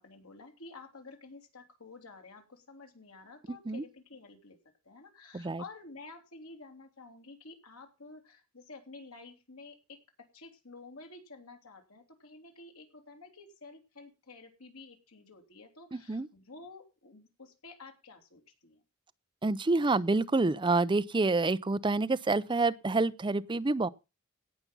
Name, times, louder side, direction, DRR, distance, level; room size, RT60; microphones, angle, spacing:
voice 1, 0.0-4.6 4.8-10.0 10.3-18.8, left 3 dB, 90° left, 3.0 m, -51 dB
voice 2, 15.9-16.3 19.4-23.9, right 3 dB, 20° right, 0.5 m, -28 dB
17.5 x 5.9 x 5.4 m
head